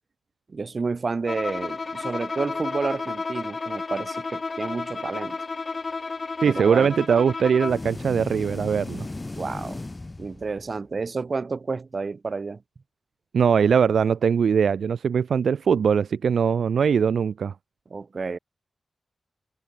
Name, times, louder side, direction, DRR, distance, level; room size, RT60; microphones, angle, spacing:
voice 1, 0.5-5.4 6.4-6.9 9.3-9.8 10.2-12.6 17.9-18.4, right 4 dB, 45° right, 6.7 m, -30 dB
Bowed string instrument, 1.3-7.9, left 4 dB, 40° left, 3.1 m, -32 dB
voice 2, 6.4-9.1 13.3-17.5, right 7 dB, 85° right, 1.0 m, -21 dB
sound 1, 7.6-10.8, left 2 dB, 25° left, 1.8 m, -36 dB
wide cardioid pair, 105°, 0 cm